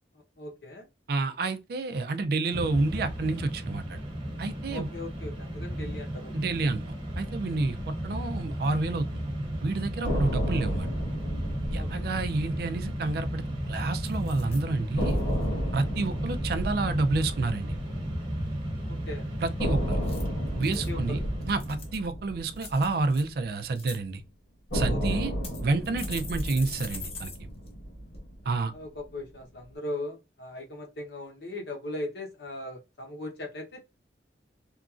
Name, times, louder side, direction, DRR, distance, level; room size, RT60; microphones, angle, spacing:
voice 1, 0.4-0.9 4.7-6.3 11.7-12.1 18.9-19.2 20.9-21.3 24.9-25.2 28.7-33.8, left 1 dB, 70° left, 0.9 m, -39 dB
voice 2, 1.1-4.0 4.4-4.9 6.3-6.8 7.2-9.2 9.6-10.9 11.7-15.2 15.7-17.7 19.4-20.0 20.6-21.2 21.5-24.2 24.7-25.3 25.6-27.3 28.5-28.7, right 3 dB, 60° right, 0.4 m, -29 dB
Mechanisms, 2.5-22.0, equal, 30° right, 0.8 m, -34 dB
sound 1, 10.0-14.1 14.4-14.5 15.0-19.0 19.6-23.9 24.7-29.1, equal, 90° left, 1.4 m, -33 dB
sound 2, 14.0-14.6 15.1-15.4 19.9-20.9 21.4-22.1 22.6-23.2 23.6-24.0 24.7-24.8 25.4-27.4 27.7-27.8 28.1-28.2, left 4 dB, 35° left, 0.7 m, -43 dB
2.9 x 2.4 x 2.4 m
head